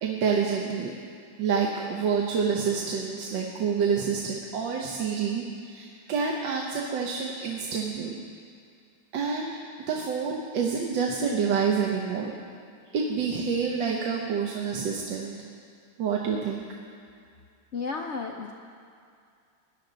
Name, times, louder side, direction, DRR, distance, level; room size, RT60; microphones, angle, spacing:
voice 1, 0.0-0.9 1.4-8.1 9.1-9.5 9.9-12.3 12.9-15.3 16.0-16.6, right 6 dB, 80° right, 0 dB, 1.6 m, -28 dB
voice 2, 17.7-18.5, left 4 dB, 70° left, 2 dB, 0.6 m, -32 dB
19.0 x 11.0 x 3.9 m, 2.3 s
omnidirectional pair, 2.0 m